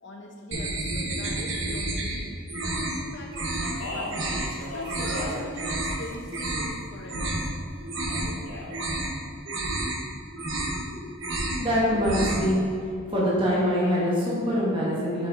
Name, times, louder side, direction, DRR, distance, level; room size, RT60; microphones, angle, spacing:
voice 1, 0.0-4.3 4.7-7.4, left 1 dB, 60° left, 0 dB, 0.8 m, -41 dB
sound 1, 0.5-2.2 2.5-3.0 3.3-3.7 4.1-4.5 4.8-5.2 5.6-6.0 6.3-6.7 7.1-7.5 7.8-8.4 8.7-9.1 9.5-10.0 10.3-10.9 11.2-11.6 11.9-12.5, right 2 dB, 65° right, 0.9 m, -30 dB
Speech, 3.5-5.5 5.8-6.6 8.1-8.7, left 1 dB, 85° left, 1.4 m, -36 dB
voice 2, 10.6-11.0 11.6-12.6 13.1-15.3, equal, 25° right, -7 dB, 1.3 m, -24 dB
5.9 x 5.5 x 3.8 m, 2.5 s
head